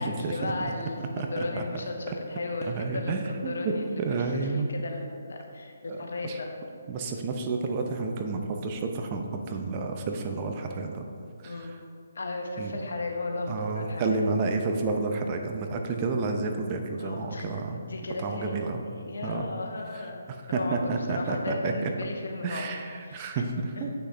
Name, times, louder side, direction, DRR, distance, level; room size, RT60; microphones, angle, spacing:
voice 1, 0.0-6.5 11.4-11.7 12.1-14.3 17.0-17.5 17.7-20.2 20.5-22.7 23.0-23.5 23.8-23.9, left 2 dB, 65° left, 2 dB, 1.1 m, -35 dB
voice 2, 1.2-1.6 2.6-3.6 4.0-4.7 5.9-6.0 6.2-6.4 6.9-11.0 11.4-11.8 12.6-12.7 13.5-17.8 18.2-18.8 19.2-19.5 20.5-21.9 22.4-23.4 23.8-23.9, right 3 dB, 30° right, 4 dB, 0.7 m, -30 dB
7.7 x 6.2 x 3.3 m, 2.3 s
figure-of-eight pair, 145°, 0 cm